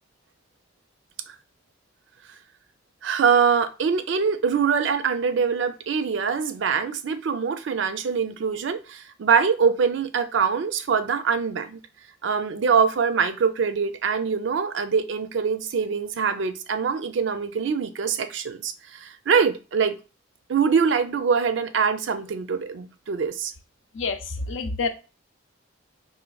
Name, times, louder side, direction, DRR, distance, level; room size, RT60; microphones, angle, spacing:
voice 1, 3.0-11.8 12.2-20.0 20.5-23.5, right 6 dB, 70° right, 0.4 m, -23 dB
voice 2, 23.9-24.9, left 4 dB, 80° left, 0.5 m, -28 dB
4.4 x 3.1 x 2.3 m
head